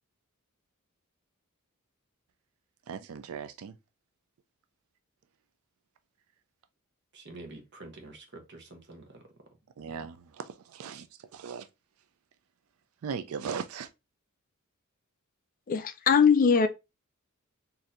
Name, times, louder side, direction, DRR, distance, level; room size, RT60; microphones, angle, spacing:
voice 1, 2.9-3.8 9.8-11.7 13.0-13.9, right 6 dB, 75° right, 0.4 m, -38 dB
voice 2, 7.1-9.3, right 2 dB, 50° right, 0.9 m, -47 dB
voice 3, 15.7-16.7, left 6 dB, 40° left, 0.4 m, -21 dB
4.1 x 2.7 x 2.5 m
head